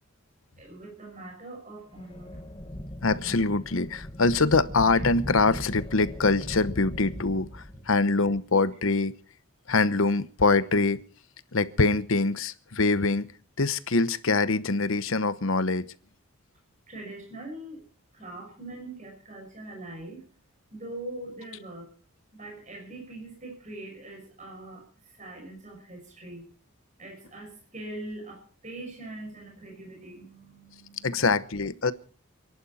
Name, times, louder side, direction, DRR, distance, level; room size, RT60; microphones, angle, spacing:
voice 1, 0.6-2.4 16.9-17.8 18.1-20.2 20.7-21.9 22.3-24.8 25.2-26.4 27.0-31.4, right 2 dB, 35° right, 6.0 m, -42 dB
sound 1, 1.9-8.1, equal, 25° left, 1.4 m, -38 dB
voice 2, 3.0-9.2 9.7-11.0 11.5-13.3 13.6-15.9 31.0-31.9, left 3 dB, 65° left, 0.9 m, -24 dB
29.5 x 11.0 x 4.2 m
head